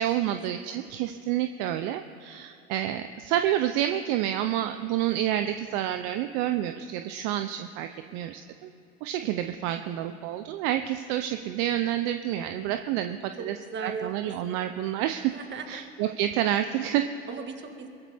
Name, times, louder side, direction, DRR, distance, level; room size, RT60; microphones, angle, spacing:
voice 1, 0.0-8.7 9.0-13.5 13.8-15.3 15.7-17.1, right 12 dB, 55° right, 9 dB, 0.7 m, -29 dB
voice 2, 0.6-1.0 8.0-8.2 12.9-14.3 15.3-15.8 17.3-17.9, right 5 dB, 30° right, 5 dB, 1.9 m, -39 dB
23.0 x 14.0 x 3.5 m, 2.7 s
hypercardioid pair, 95°, 35 cm